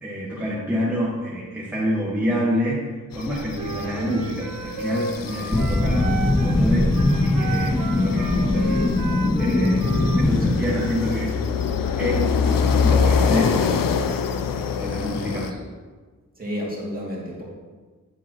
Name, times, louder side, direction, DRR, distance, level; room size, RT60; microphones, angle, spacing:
voice 1, 0.0-6.9 7.2-8.8 9.4-11.4 12.0-13.8 14.8-15.5, equal, 5° right, -7 dB, 1.3 m, -27 dB
sound 1, 3.1-15.5, left 6 dB, 85° left, 0.5 m, -26 dB
Wind instrument woodwind instrument, 3.5-6.6 6.9-10.3, right 4 dB, 80° right, 0.8 m, -34 dB
sound 2, 5.5-10.5, left 2 dB, 15° left, 0.4 m, -21 dB
voice 2, 16.4-17.4, equal, 25° right, -5 dB, 2.3 m, -31 dB
9.9 x 6.9 x 2.9 m, 1.4 s
wide cardioid pair, 155°, 33 cm